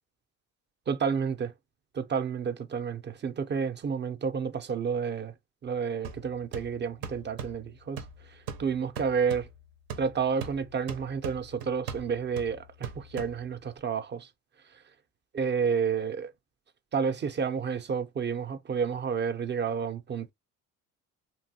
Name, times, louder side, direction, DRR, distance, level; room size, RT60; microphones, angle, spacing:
voice 1, 0.9-1.5 1.9-5.3 5.6-9.5 10.0-14.3 15.3-16.3 16.9-20.3, right 6 dB, 30° right, 0.5 m, -30 dB
sound 1, 6.0-13.8, right 6 dB, 75° right, 0.7 m, -42 dB
2.9 x 2.3 x 2.8 m
supercardioid pair, 75°, 34 cm